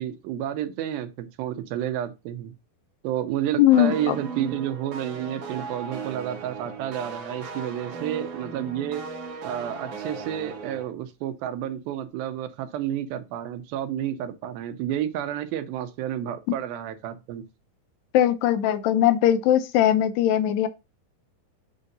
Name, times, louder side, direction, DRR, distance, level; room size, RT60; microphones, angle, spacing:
voice 1, 0.0-2.5 3.0-9.0 9.4-17.4, right 11 dB, 85° right, 2.6 m, -30 dB
voice 2, 3.6-4.2 18.1-20.7, left 11 dB, 80° left, 2.3 m, -20 dB
sound 1, 3.7-10.9, right 5 dB, 65° right, 1.6 m, -37 dB
6.6 x 2.7 x 5.3 m
omnidirectional pair, 4.1 m